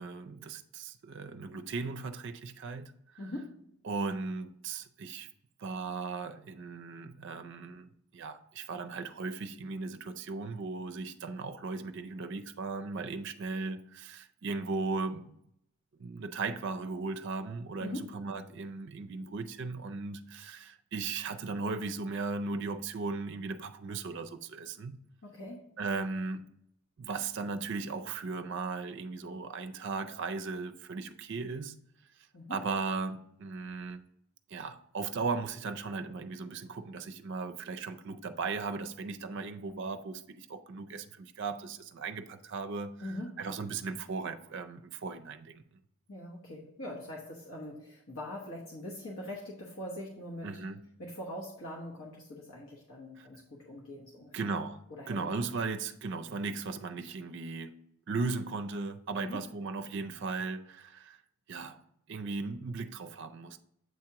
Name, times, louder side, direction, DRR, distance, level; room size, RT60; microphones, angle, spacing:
voice 1, 0.0-2.9 3.8-5.3 5.6-15.3 16.0-25.0 25.8-26.5 27.0-31.8 32.5-34.0 34.5-45.6 50.4-50.8 53.2-53.3 54.3-57.8 58.1-61.2 61.5-61.8 62.1-63.6, right 4 dB, 55° right, 0.4 m, -37 dB
voice 2, 3.2-3.7 17.8-18.1 25.2-25.7 32.3-32.6 43.0-43.5 46.1-50.6 51.0-54.4 54.9-55.4 59.2-59.5, left 1 dB, 70° left, 1.0 m, -42 dB
7.9 x 2.9 x 4.6 m
head